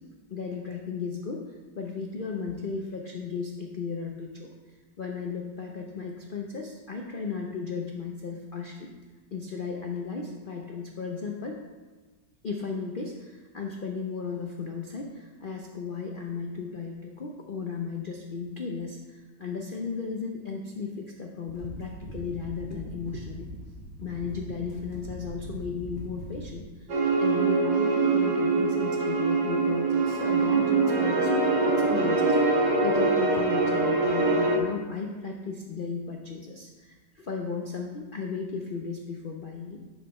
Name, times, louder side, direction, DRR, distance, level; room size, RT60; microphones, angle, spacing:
voice 1, 0.3-1.4 1.8-8.9 9.3-11.6 12.4-23.5 24.0-31.3 31.7-39.8, left 5 dB, 70° left, 1 dB, 0.4 m, -35 dB
sound 1, 21.5-26.6, equal, 35° right, 2.0 m, -41 dB
sound 2, 26.9-34.6, right 3 dB, 75° right, 1.7 m, -24 dB
10.0 x 4.9 x 4.2 m, 1.3 s
omnidirectional pair, 1.9 m